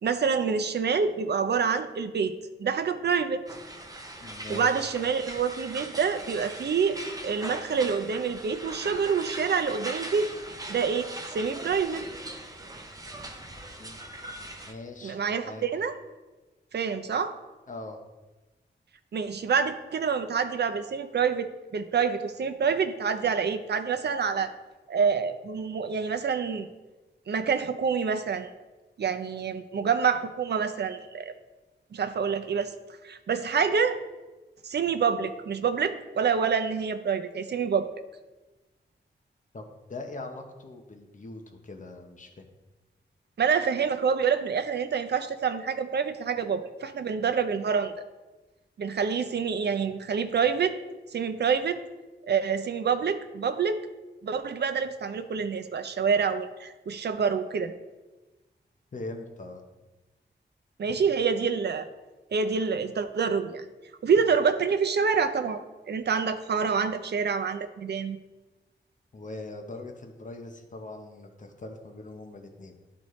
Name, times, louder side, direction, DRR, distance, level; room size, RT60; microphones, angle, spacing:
voice 1, 0.0-2.3 2.6-3.4 4.5-10.3 10.7-12.0 15.0-15.9 16.7-17.3 19.1-24.5 24.9-26.7 27.3-28.5 29.0-31.3 31.9-32.7 33.0-33.9 34.6-37.9 43.4-47.9 48.8-50.8 51.1-51.8 52.3-53.8 54.2-57.7 60.8-61.9 62.3-63.7 64.0-65.6 65.9-68.2, right 6 dB, 60° right, 9 dB, 0.5 m, -27 dB
sound 1, 3.5-14.7, right 1 dB, 20° right, 0.7 m, -40 dB
voice 2, 4.2-4.9 13.8-14.0 14.3-14.4 14.7-15.7 17.7-18.0 39.5-39.6 39.9-42.5 58.9-59.6 60.8-60.9 69.1-72.7, left 2 dB, 40° left, 3 dB, 0.8 m, -41 dB
12.5 x 4.1 x 3.2 m, 1.2 s
wide cardioid pair, 140°, 19 cm